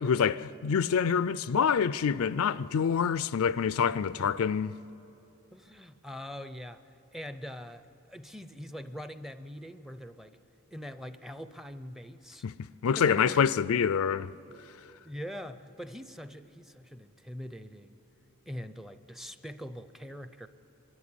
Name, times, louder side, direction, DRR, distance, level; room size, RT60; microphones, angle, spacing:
voice 1, 0.0-4.7 12.4-12.5 12.8-14.3, left 7 dB, 70° left, 0.4 m, -26 dB
voice 2, 5.5-10.4 10.7-12.5 12.9-13.5 15.0-18.0 18.5-20.5, equal, ahead, 0.5 m, -43 dB
24.0 x 13.5 x 9.8 m
head